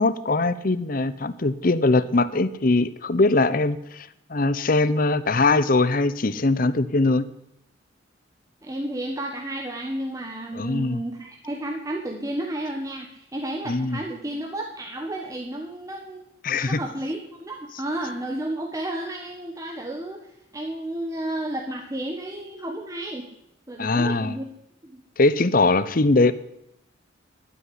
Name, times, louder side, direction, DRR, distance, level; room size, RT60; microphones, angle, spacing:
voice 1, 0.0-7.3 10.5-11.0 13.7-14.0 16.4-16.8 23.8-24.4 25.2-26.3, left 3 dB, 45° left, 15 dB, 0.7 m, -21 dB
voice 2, 8.6-16.3 16.7-20.2 20.5-23.3 23.7-24.5 24.8-25.0, right 1 dB, 15° right, 2 dB, 1.3 m, -32 dB
11.5 x 9.7 x 9.7 m, 0.80 s
head